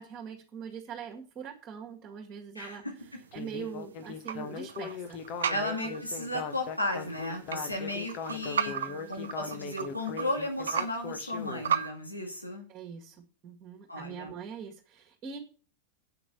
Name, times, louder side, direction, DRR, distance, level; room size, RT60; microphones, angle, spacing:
voice 1, 0.0-2.8 3.3-5.2 5.5-6.0 8.9-9.1 12.7-13.2 13.4-15.4, right 7 dB, 30° right, 2 dB, 1.9 m, -42 dB
voice 2, 2.6-2.9 5.5-8.7 9.1-12.6 13.9-14.4, left 1 dB, 85° left, 1 dB, 2.2 m, -34 dB
sound 1, 3.0-11.9, right 7 dB, 65° right, 0.8 m, -36 dB
Speech synthesizer, 3.3-11.6, left 6 dB, 40° left, 1.3 m, -39 dB
8.3 x 6.1 x 8.1 m, 0.38 s
figure-of-eight pair, 90°, 0 cm